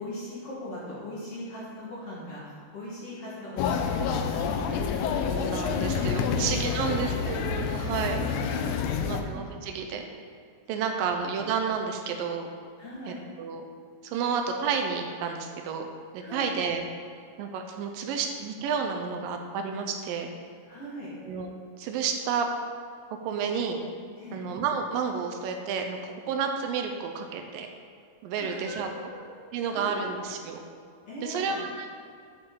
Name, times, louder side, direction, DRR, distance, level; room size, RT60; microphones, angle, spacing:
voice 1, 0.0-4.9 5.3-6.0 6.3-6.4 6.8-7.1 8.0-9.3 10.7-11.2 12.8-13.2 16.2-16.5 20.7-21.1 24.2-24.4 28.3-29.4 29.6-30.2 31.1-31.6, left 1 dB, 50° left, -7 dB, 2.0 m, -40 dB
sound 1, 3.6-9.2, left 6 dB, 85° left, 1.7 m, -28 dB
voice 2, 5.2-8.2 9.0-10.0 10.7-12.5 13.1-13.7 14.0-15.9 16.1-16.8 17.4-20.3 21.3-21.5 21.8-22.5 23.2-23.8 24.3-27.7 28.2-28.9 29.5-30.6 31.2-31.9, right 6 dB, 85° right, 4 dB, 2.3 m, -31 dB
8.8 x 6.8 x 3.7 m, 2.3 s
omnidirectional pair, 4.1 m